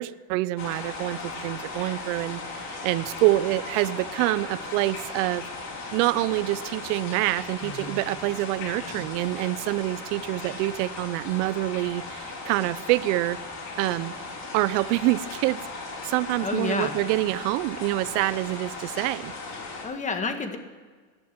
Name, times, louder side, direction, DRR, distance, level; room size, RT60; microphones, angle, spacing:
voice 1, 0.0-5.4 5.9-13.4 13.8-14.1 14.5-19.3, right 18 dB, 70° right, 17 dB, 0.6 m, -26 dB
sound 1, 0.6-19.9, left 3 dB, 45° left, 4.1 m, -37 dB
voice 2, 7.6-8.0 8.7-9.1 16.4-17.0 19.8-20.6, left 4 dB, 20° left, 7 dB, 1.6 m, -30 dB
17.0 x 11.0 x 6.0 m, 1.5 s
supercardioid pair, 140°, 39 cm